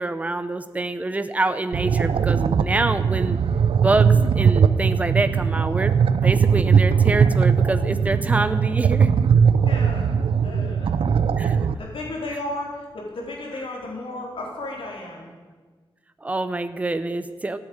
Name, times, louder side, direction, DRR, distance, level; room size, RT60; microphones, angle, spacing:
voice 1, 0.0-3.4 3.8-9.1 11.4-11.6 16.2-17.6, right 2 dB, 15° right, 11 dB, 0.7 m, -26 dB
sound 1, 1.7-11.7, right 6 dB, 85° right, 0.6 m, -19 dB
voice 2, 9.6-10.1 10.4-11.0 11.4-15.3, left 2 dB, 80° left, -2 dB, 4.2 m, -34 dB
13.5 x 9.7 x 8.8 m, 1.4 s
wide cardioid pair, 165°, 9 cm